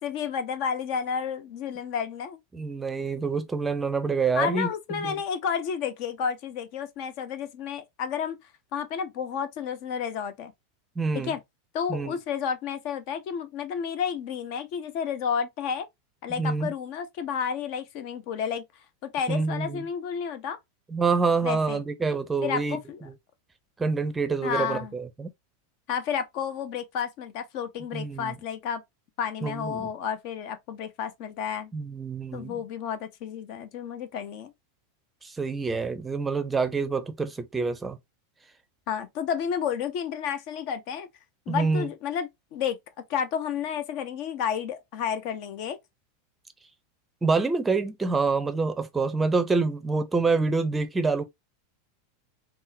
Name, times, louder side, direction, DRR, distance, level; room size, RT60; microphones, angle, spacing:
voice 1, 0.0-2.4 4.3-8.4 8.7-10.5 11.1-11.4 11.7-15.9 16.2-18.6 19.0-20.6 21.4-21.8 22.4-23.1 24.4-25.0 25.9-28.8 29.2-31.7 32.3-34.5 38.9-41.1 41.5-42.8 43.1-45.8, left 7 dB, 50° left, 0.5 m, -31 dB
voice 2, 2.5-5.2 11.0-11.3 11.9-12.2 16.4-16.7 19.3-19.8 20.9-22.8 23.8-25.3 27.9-28.4 29.4-29.9 31.7-32.6 35.2-38.0 41.5-41.9 47.2-51.2, right 4 dB, 15° right, 0.5 m, -27 dB
3.6 x 2.0 x 2.5 m
figure-of-eight pair, 85°, 0 cm